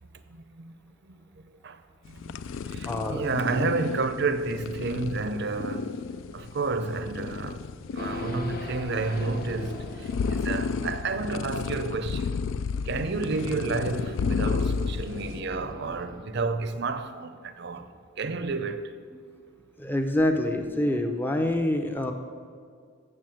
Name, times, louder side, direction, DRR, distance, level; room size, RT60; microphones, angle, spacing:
voice 1, 0.3-0.7 1.0-6.0 6.3-12.4 12.8-17.9 18.2-18.9, right 3 dB, 55° right, 0.5 m, -31 dB
sound 1, 2.0-15.4, left 5 dB, 65° left, 0.3 m, -32 dB
voice 2, 2.8-3.2 19.1-19.2 19.8-22.1, left 1 dB, 10° left, 0.6 m, -26 dB
Race car auto racing / Idling / Accelerating revving vroom, 7.9-16.6, left 1 dB, 45° left, 0.9 m, -42 dB
7.5 x 7.2 x 7.6 m
head